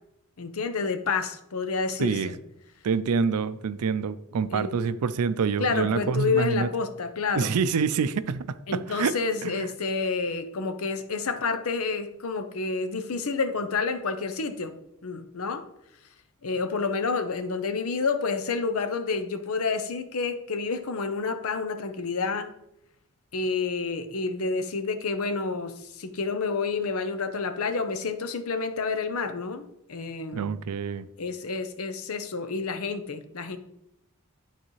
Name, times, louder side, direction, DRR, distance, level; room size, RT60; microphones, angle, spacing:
voice 1, 0.4-2.4 4.5-4.7 5.6-7.6 8.7-15.6 16.4-22.5 23.3-30.6 31.2-33.6, left 4 dB, 75° left, 0.7 m, -29 dB
voice 2, 2.0-2.3 2.8-6.7 7.3-9.2 9.4-9.7 30.3-31.1, right 5 dB, 85° right, 0.4 m, -26 dB
11.0 x 4.1 x 3.1 m
head